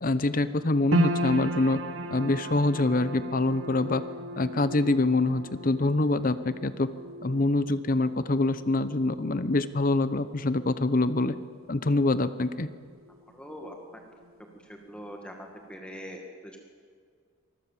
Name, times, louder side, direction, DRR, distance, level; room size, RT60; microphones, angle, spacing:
voice 1, 0.0-1.8 2.1-4.0 4.4-6.9 7.2-11.3 11.7-12.7, left 2 dB, 45° left, 13 dB, 0.8 m, -25 dB
sound 1, 0.9-13.3 13.6-14.5 15.0-15.1, right 1 dB, 85° right, 1.4 m, -36 dB
voice 2, 13.3-13.7 14.9-15.3 15.7-16.6, equal, 5° left, 2 dB, 2.0 m, -41 dB
24.5 x 20.5 x 7.4 m, 2.1 s
head